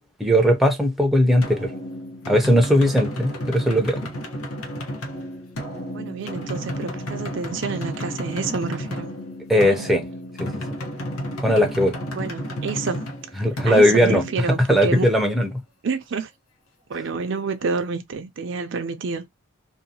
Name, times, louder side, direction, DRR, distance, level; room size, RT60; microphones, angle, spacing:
voice 1, 0.2-1.7 2.3-4.0 9.5-10.0 10.4-10.5 11.4-11.9 13.4-14.2 14.7-15.5, equal, ahead, 0.5 m, -18 dB
sound 1, 1.4-15.0, equal, 90° left, 1.0 m, -32 dB
voice 2, 5.9-9.1 9.5-9.9 12.1-13.0 13.7-15.1 15.8-16.3 16.9-19.3, right 4 dB, 55° right, 0.4 m, -28 dB
2.7 x 2.2 x 2.7 m
head